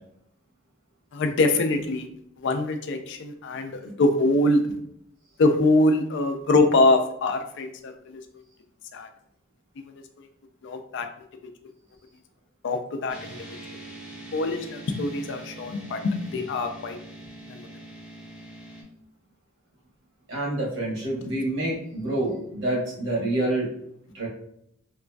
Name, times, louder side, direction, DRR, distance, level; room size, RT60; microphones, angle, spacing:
voice 1, 1.1-2.1 2.4-3.7 4.0-4.6 5.4-8.2 8.9-9.1 10.2-10.3 10.6-11.1 12.6-13.4 14.3-17.0 17.5-17.6 21.2-21.3, left 2 dB, 60° left, 6 dB, 0.4 m, -23 dB
sound 1, 13.1-18.8, right 1 dB, 5° right, 0.5 m, -43 dB
voice 2, 20.3-23.7 24.1-24.3, right 1 dB, 70° right, -3 dB, 1.1 m, -27 dB
2.9 x 2.4 x 2.2 m, 0.71 s
head